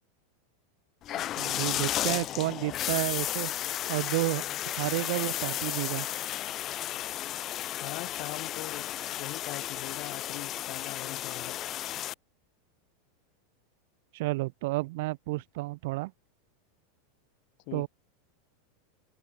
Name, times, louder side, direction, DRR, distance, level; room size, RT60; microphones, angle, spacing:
sound 1, 1.0-12.1, left 13 dB, 35° left, 2.1 m, -33 dB
voice 1, 1.1-3.5 3.9-6.1 14.1-16.1 17.7-17.9, right 21 dB, 65° right, 6.6 m, -31 dB
voice 2, 7.8-11.6 17.7-17.9, left 40 dB or more, 55° left, 3.5 m, -41 dB
open air
supercardioid pair, 140°, 0 cm